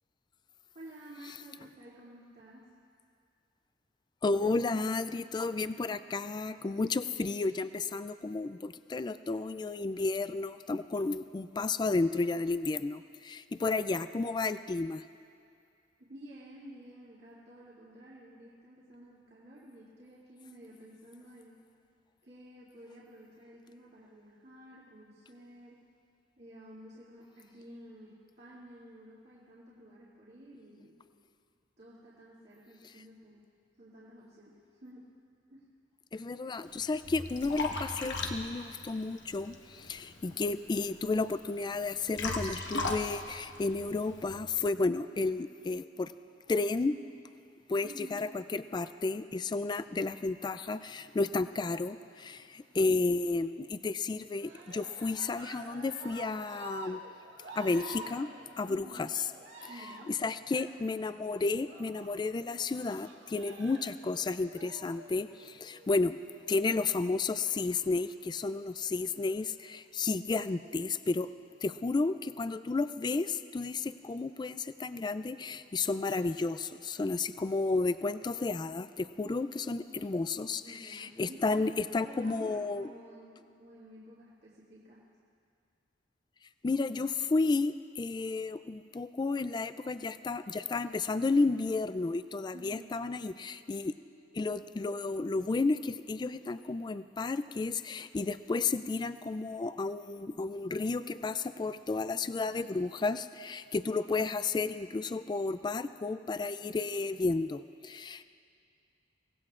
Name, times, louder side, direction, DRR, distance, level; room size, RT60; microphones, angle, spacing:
voice 1, 0.7-2.7 16.0-21.6 22.2-25.8 26.4-31.0 31.8-33.4 33.8-35.1 35.5-35.7 47.8-48.3 58.7-59.1 59.7-60.2 79.7-79.9 80.5-85.1 92.5-92.9, equal, 60° right, -9 dB, 2.4 m, -52 dB
voice 2, 4.2-15.0 36.1-46.1 46.5-46.9 47.7-57.0 57.5-58.3 58.6-59.1 60.1-66.2 66.5-71.3 71.6-82.9 86.6-93.9 94.3-108.2, left 3 dB, 25° left, 13 dB, 0.3 m, -32 dB
Liquid, 36.7-44.4, left 3 dB, 75° left, 1.2 m, -39 dB
Cheering, 54.3-66.0 67.2-68.1 68.8-69.5, right 1 dB, 85° right, 2.0 m, -49 dB
24.0 x 18.0 x 2.5 m, 2.3 s
head